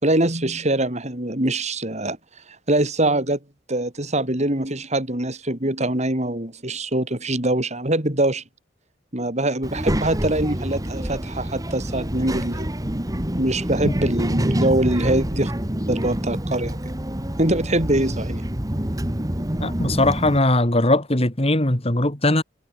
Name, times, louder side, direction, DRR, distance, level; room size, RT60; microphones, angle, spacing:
voice 1, 0.0-2.2 2.7-3.4 3.7-8.4 9.1-12.7 13.4-15.5 15.9-16.8 17.4-18.5, right 1 dB, 35° right, 4.4 m, -23 dB
Child speech kid speaking, 9.6-20.4, equal, 20° right, 1.8 m, -26 dB
voice 2, 19.6-22.4, left 1 dB, 30° left, 2.7 m, -20 dB
head